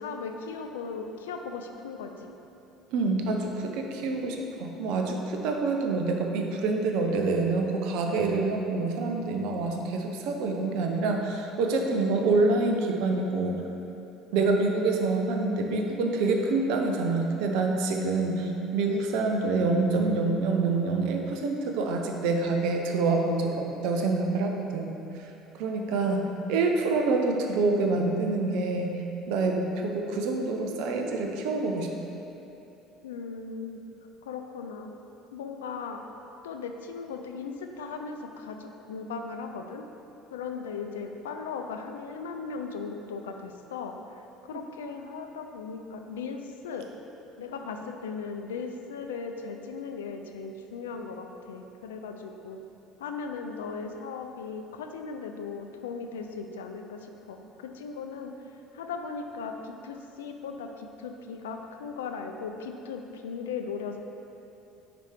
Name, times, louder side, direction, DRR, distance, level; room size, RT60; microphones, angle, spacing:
voice 1, 0.0-2.3 33.0-33.8 34.2-34.9 35.3-36.0 36.4-39.8 40.3-47.1 47.4-52.6 53.0-58.3 58.7-64.0, left 5 dB, 85° left, 5 dB, 0.4 m, -37 dB
voice 2, 2.9-13.6 14.3-25.3 25.6-28.9 29.3-31.9 44.5-44.6, right 3 dB, 65° right, 2 dB, 0.6 m, -26 dB
5.0 x 4.7 x 4.5 m, 2.9 s
hypercardioid pair, 65°, 0 cm